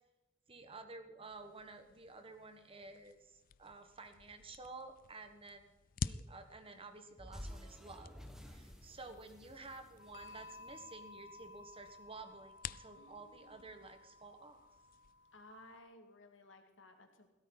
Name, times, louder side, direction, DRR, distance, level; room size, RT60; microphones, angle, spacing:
voice 1, 0.5-5.7 6.0-8.1 8.5-14.6, right 3 dB, 30° right, 8 dB, 1.4 m, -52 dB
sound 1, 1.3-15.1, left 6 dB, 45° left, 0.4 m, -50 dB
sound 2, 7.2-11.6, equal, 5° right, 1.4 m, -53 dB
sound 3, 10.0-15.8, left 2 dB, 65° left, 0.8 m, -56 dB
voice 2, 13.0-13.7 15.3-17.3, left 1 dB, 85° left, 5 dB, 2.3 m, -59 dB
16.5 x 13.5 x 4.1 m, 1.1 s
head